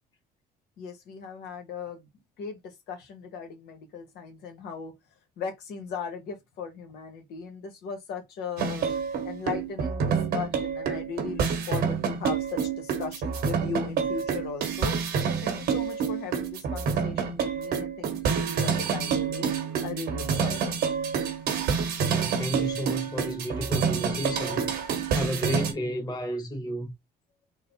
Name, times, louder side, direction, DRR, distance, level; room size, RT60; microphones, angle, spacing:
voice 1, 0.8-2.1 2.4-4.9 5.4-8.9 9.2-15.0 15.4-19.5 19.8-20.7, left 5 dB, 75° left, 1.3 m, -38 dB
sound 1, 8.6-25.7, right 6 dB, 70° right, 1.3 m, -28 dB
voice 2, 22.0-24.7 25.1-26.9, equal, 25° left, 1.4 m, -32 dB
3.8 x 2.1 x 4.2 m
cardioid pair, 110°, 17 cm